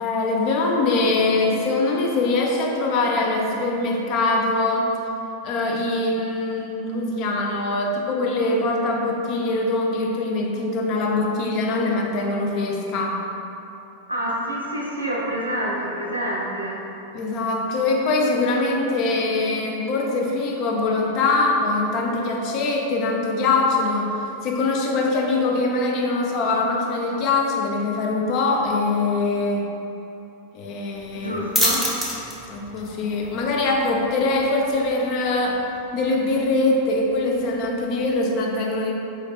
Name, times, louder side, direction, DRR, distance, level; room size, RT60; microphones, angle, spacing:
voice 1, 0.0-4.9 5.4-13.3 17.1-24.1 24.4-29.7 30.5-31.4 32.5-35.6 35.9-38.9, left 2 dB, 40° left, 0 dB, 0.5 m, -23 dB
voice 2, 14.1-16.8 31.1-31.8, equal, 85° right, -5 dB, 0.6 m, -27 dB
sound 1, 31.0-38.2, equal, ahead, 0.6 m, -31 dB
4.4 x 3.3 x 2.3 m, 2.9 s
figure-of-eight pair, 90°, 0 cm